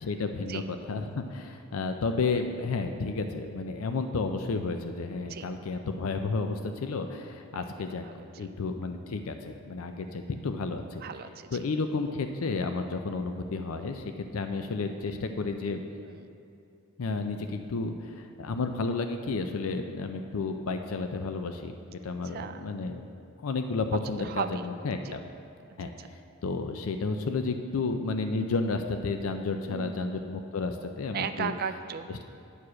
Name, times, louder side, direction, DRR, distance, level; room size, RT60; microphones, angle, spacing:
voice 1, 0.0-8.0 8.4-11.0 11.5-15.8 17.0-23.1 23.4-25.2 25.8-25.9 26.4-31.5, left 3 dB, 90° left, 7 dB, 0.5 m, -32 dB
voice 2, 8.0-8.5 11.0-11.5 16.0-16.3 22.2-22.7 24.2-24.7 24.9-25.1 25.8-26.1 29.7-30.2 31.1-32.1, right 7 dB, 45° right, 10 dB, 0.4 m, -36 dB
9.9 x 4.8 x 6.3 m, 2.8 s
head